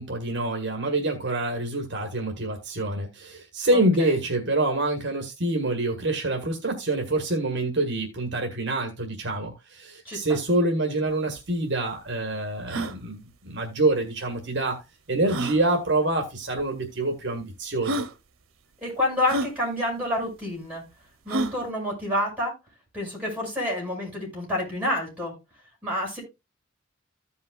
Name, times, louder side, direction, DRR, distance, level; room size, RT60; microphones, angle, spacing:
voice 1, 0.0-14.8 15.1-18.0, right 2 dB, 60° right, 1.7 m, -26 dB
voice 2, 3.7-4.2 10.0-10.4 18.8-20.8 21.2-22.5 22.9-25.3 25.8-26.2, left 1 dB, 5° right, 6.0 m, -28 dB
sound 1, 11.1-11.2 11.4-11.5 12.0-12.1 12.6-13.0 14.3-14.4 15.3-15.6 16.6-16.7 17.4-17.5 17.8-18.1 19.3-19.5 21.3-21.6, right 1 dB, 90° right, 0.8 m, -29 dB
15.0 x 5.5 x 2.4 m
head